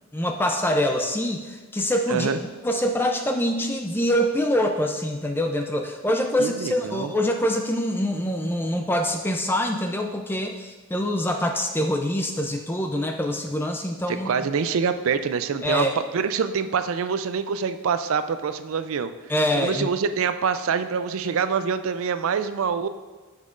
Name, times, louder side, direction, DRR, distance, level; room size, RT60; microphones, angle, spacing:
voice 1, 0.1-2.3 2.6-14.3 15.6-15.9 19.3-19.9, left 1 dB, 10° left, 4 dB, 0.4 m, -25 dB
voice 2, 2.1-2.4 6.4-7.1 14.1-15.9 16.1-19.1 19.6-22.9, right 6 dB, 70° right, 11 dB, 0.4 m, -25 dB
10.5 x 7.2 x 2.5 m, 1.3 s
head